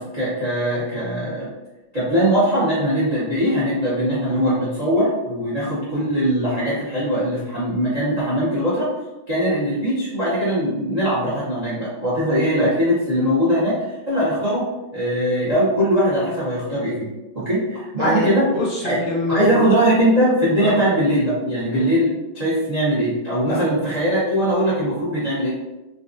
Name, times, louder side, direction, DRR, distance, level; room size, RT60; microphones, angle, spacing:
voice 1, 0.0-1.5 1.9-8.9 9.3-13.8 14.1-14.7 14.9-17.1 17.3-18.4 18.8-18.9 19.3-25.5, equal, 65° right, -8 dB, 0.4 m, -21 dB
voice 2, 18.0-19.7 20.6-20.8 21.7-21.9 23.5-23.9, left 2 dB, 75° left, -2 dB, 1.1 m, -26 dB
3.9 x 2.3 x 2.6 m, 1.0 s
omnidirectional pair, 2.3 m